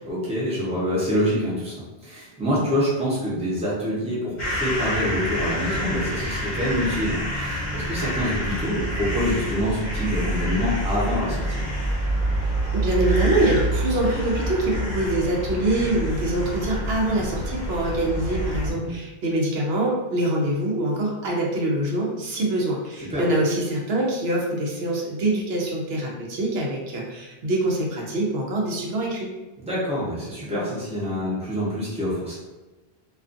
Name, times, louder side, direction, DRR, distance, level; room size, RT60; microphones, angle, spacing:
voice 1, 0.0-11.6 18.8-18.9 23.1-23.2 29.6-32.4, equal, 5° right, -7 dB, 0.6 m, -26 dB
sound 1, 4.4-18.7, right 1 dB, 50° left, 0.9 m, -27 dB
voice 2, 12.7-29.3, right 1 dB, 75° right, -2 dB, 0.8 m, -24 dB
2.4 x 2.4 x 2.5 m, 1.2 s
omnidirectional pair, 1.0 m